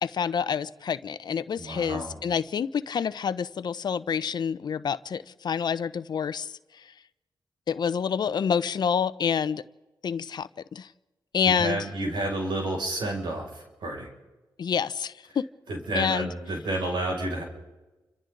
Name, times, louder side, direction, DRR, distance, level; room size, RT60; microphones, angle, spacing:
voice 1, 0.0-6.6 7.7-9.6 10.0-10.9 11.3-11.8 14.6-15.5 15.9-16.3, left 7 dB, 65° left, 14 dB, 0.7 m, -28 dB
voice 2, 1.6-2.2 11.6-14.1 15.7-17.4, right 1 dB, 85° right, 0 dB, 6.4 m, -30 dB
29.5 x 26.0 x 3.9 m, 1.1 s
cardioid pair, 75°, 8 cm